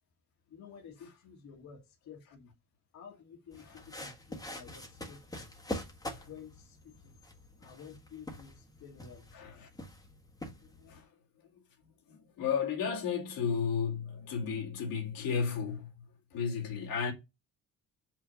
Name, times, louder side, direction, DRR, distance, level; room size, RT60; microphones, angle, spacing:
voice 1, 0.5-2.5 2.9-5.5 6.2-7.2 7.6-9.3, left 7 dB, 55° left, 1.8 m, -52 dB
sound 1, 3.5-11.0, left 1 dB, 10° left, 1.4 m, -45 dB
voice 2, 9.3-9.7 10.6-11.1 12.1-15.9 16.3-17.1, left 6 dB, 85° left, 2.5 m, -33 dB
6.3 x 5.9 x 5.5 m
cardioid pair, 155°, 33 cm